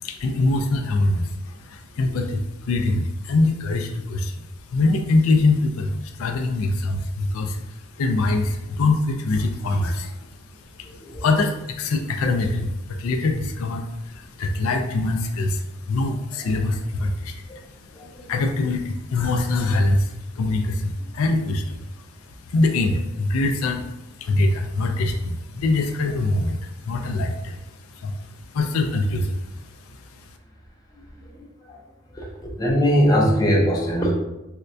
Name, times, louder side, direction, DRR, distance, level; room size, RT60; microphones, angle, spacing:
voice 1, 0.0-4.4 4.7-10.3 10.8-17.6 18.3-21.9 22.5-23.9 24.2-27.6 27.9-28.1 28.5-29.4 30.2-30.3, left 2 dB, 80° left, 4 dB, 0.4 m, -23 dB
voice 2, 11.0-11.3 16.3-16.6 17.5-17.6 17.9-18.3 31.3-31.8 32.1-32.3 32.6-34.1, equal, 15° left, -3 dB, 0.5 m, -22 dB
4.3 x 2.2 x 2.5 m, 0.93 s
head